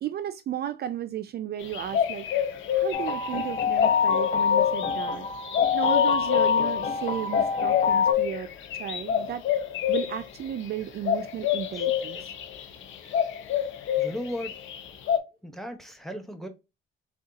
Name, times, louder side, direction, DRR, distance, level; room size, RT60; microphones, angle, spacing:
voice 1, 0.0-5.3 5.7-8.5 8.8-9.4 9.9-12.3, right 10 dB, 55° right, 0.4 m, -34 dB
sound 1, 1.6-15.2, left 10 dB, 80° left, 0.7 m, -28 dB
sound 2, 2.9-8.1, left 7 dB, 45° left, 0.8 m, -25 dB
voice 2, 14.0-14.6 15.4-16.5, equal, ahead, 1.0 m, -37 dB
3.6 x 2.3 x 3.9 m
cardioid pair, 90°, 20 cm